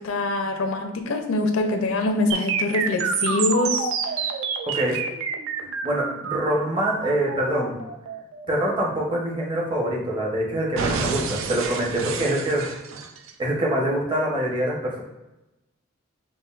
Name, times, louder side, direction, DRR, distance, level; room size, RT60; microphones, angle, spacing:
voice 1, 0.0-3.9, left 2 dB, 80° left, 4 dB, 0.5 m, -24 dB
sound 1, 2.3-10.3 10.8-13.3, right 6 dB, 75° right, 0.4 m, -29 dB
voice 2, 5.8-7.8 8.5-12.6 13.4-15.0, right 1 dB, 25° right, -3 dB, 0.8 m, -25 dB
5.2 x 2.5 x 2.4 m, 0.98 s
head